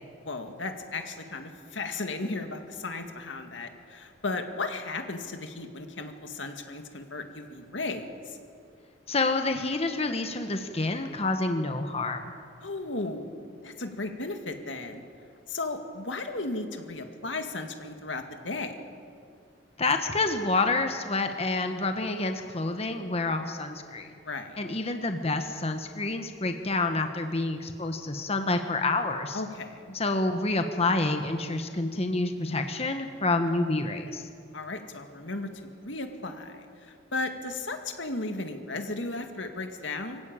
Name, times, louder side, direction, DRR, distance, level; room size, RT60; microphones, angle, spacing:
voice 1, 0.2-8.4 12.6-13.2 13.6-15.0 15.5-18.8 24.2-24.6 29.3-29.9 34.5-40.2, left 3 dB, 85° left, 5 dB, 2.1 m, -35 dB
voice 2, 9.1-12.3 19.8-24.1 24.6-29.4 29.9-34.3, left 2 dB, 35° left, 6 dB, 1.2 m, -28 dB
24.5 x 15.5 x 8.9 m, 2.3 s
head